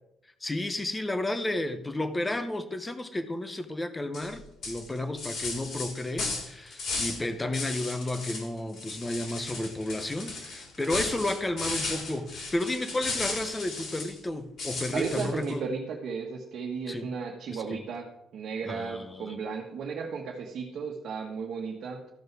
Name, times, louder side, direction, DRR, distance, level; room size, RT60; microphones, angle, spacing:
voice 1, 0.4-15.6 16.9-17.1 17.5-17.8 18.6-19.3, left 1 dB, 10° left, 9 dB, 0.9 m, -32 dB
sound 1, 4.1-4.3 4.6-7.2 7.5-8.5 8.7-14.2 14.6-15.5, left 3 dB, 50° left, 4.2 m, -35 dB
voice 2, 14.9-22.1, right 5 dB, 50° right, -1 dB, 1.5 m, -35 dB
13.5 x 6.3 x 6.2 m, 0.83 s
cardioid pair, 160°, 0 cm